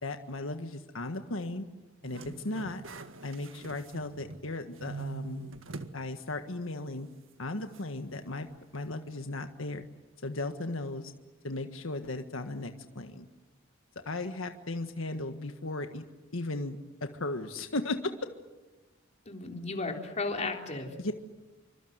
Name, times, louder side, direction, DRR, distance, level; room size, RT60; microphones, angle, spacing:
voice 1, 0.0-1.6 2.0-2.8 3.2-5.5 5.9-7.1 7.4-8.5 8.7-9.9 10.2-11.1 11.4-13.3 14.0-16.0 16.3-18.1 21.0-21.1, left 2 dB, 85° left, 7 dB, 1.6 m, -36 dB
sound 1, 2.0-4.5 4.8-6.0 6.4-6.5 7.7-7.8, right 4 dB, 75° right, 1.8 m, -43 dB
voice 2, 19.3-21.2, left 3 dB, 35° left, 2 dB, 3.8 m, -35 dB
28.0 x 25.0 x 8.0 m, 1.2 s
head